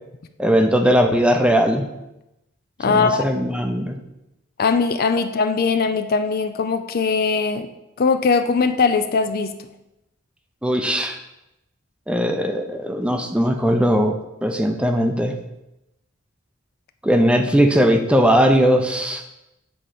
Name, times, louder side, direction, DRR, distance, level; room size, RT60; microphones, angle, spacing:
voice 1, 0.4-1.8 2.9-4.0 10.6-11.2 12.1-14.2 14.4-15.3 17.0-19.2, equal, 5° right, 5 dB, 0.6 m, -19 dB
voice 2, 2.8-3.2 4.6-7.7 8.0-9.5, left 4 dB, 45° left, 9 dB, 0.4 m, -20 dB
7.6 x 3.8 x 6.7 m, 0.91 s
head